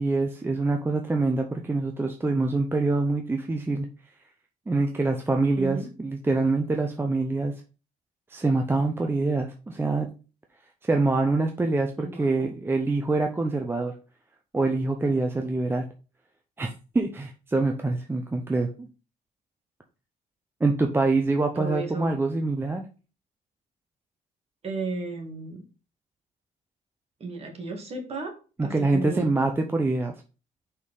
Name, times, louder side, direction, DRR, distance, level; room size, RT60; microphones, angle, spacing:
voice 1, 0.0-3.9 4.7-7.5 8.3-10.1 10.8-13.9 14.5-15.9 16.6-18.9 20.6-22.8 28.6-30.1, right 3 dB, 15° right, 3 dB, 0.7 m, -25 dB
voice 2, 5.6-5.9 12.0-12.5 21.5-22.1 24.6-25.7 27.2-28.3 28.6-29.4, right 3 dB, 35° right, 3 dB, 2.1 m, -34 dB
5.5 x 4.1 x 4.9 m, 0.35 s
cardioid pair, 110°, 17 cm